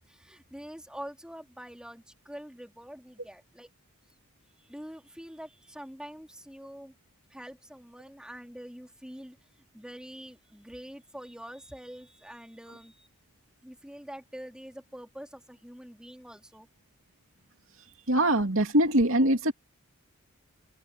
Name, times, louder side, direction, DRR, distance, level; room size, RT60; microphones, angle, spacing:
voice 1, 0.0-3.7 4.5-6.9 7.3-13.1 13.6-16.7, equal, 5° right, 3.4 m, -45 dB
voice 2, 18.1-19.5, right 1 dB, 65° right, 2.8 m, -23 dB
head